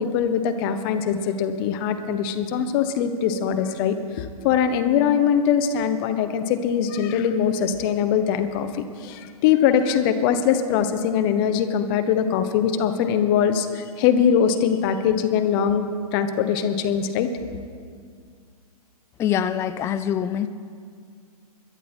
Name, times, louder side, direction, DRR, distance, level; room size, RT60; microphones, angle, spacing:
voice 1, 0.0-17.3, left 8 dB, 35° left, 9 dB, 1.1 m, -22 dB
voice 2, 19.2-20.5, left 9 dB, 15° left, 13 dB, 0.4 m, -24 dB
22.5 x 10.5 x 4.5 m, 2.1 s
hypercardioid pair, 125°, 20 cm